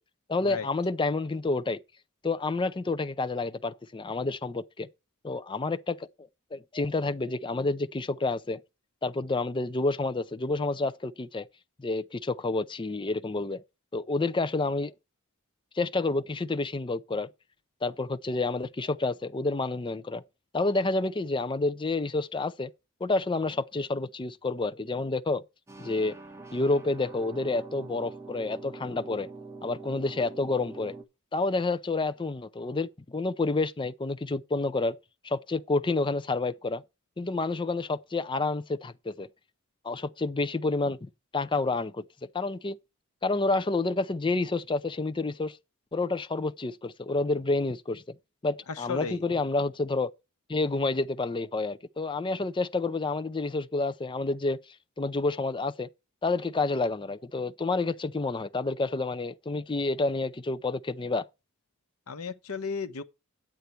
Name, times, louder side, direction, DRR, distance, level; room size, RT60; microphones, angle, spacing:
voice 1, 0.3-1.8 2.2-4.9 5.2-6.1 6.5-8.6 9.0-11.5 11.8-13.6 13.9-14.9 15.7-17.3 17.8-20.2 20.5-22.7 23.0-25.4 25.8-26.2 26.5-29.3 29.6-30.9 31.3-35.0 35.2-36.8 37.2-39.3 39.8-42.0 42.3-42.8 43.2-45.6 45.9-48.2 48.4-50.1 50.5-54.6 55.0-55.9 56.2-61.3, left 3 dB, 20° left, 0.5 m, -29 dB
sound 1, 25.7-31.0, right 3 dB, 15° right, 1.2 m, -44 dB
voice 2, 48.7-49.2 62.1-63.0, left 5 dB, 75° left, 0.9 m, -34 dB
9.1 x 8.3 x 4.4 m
head